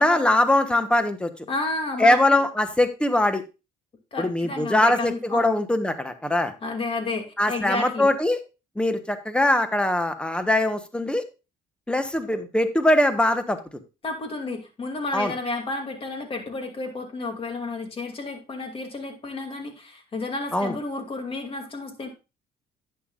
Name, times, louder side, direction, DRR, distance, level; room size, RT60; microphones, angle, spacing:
voice 1, 0.0-1.3 2.0-3.4 4.2-6.5 7.4-8.4 8.8-11.2 11.9-13.6 15.1-15.3 20.5-20.7, left 1 dB, 5° left, 9 dB, 1.2 m, -22 dB
voice 2, 1.5-2.4 4.1-5.5 6.6-8.1 14.0-22.1, left 3 dB, 35° left, 4 dB, 2.5 m, -31 dB
11.0 x 8.9 x 2.4 m, 0.29 s
cardioid pair, 110°, 17 cm